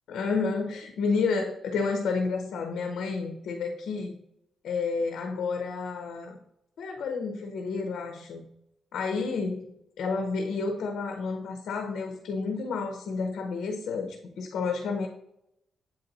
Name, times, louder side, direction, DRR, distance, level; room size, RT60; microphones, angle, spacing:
voice 1, 0.1-4.1 4.6-6.4 6.8-8.5 8.9-9.7 10.0-15.1, left 4 dB, 75° left, 5 dB, 0.7 m, -30 dB
8.3 x 4.1 x 4.0 m, 0.81 s
cardioid pair, 140°, 0 cm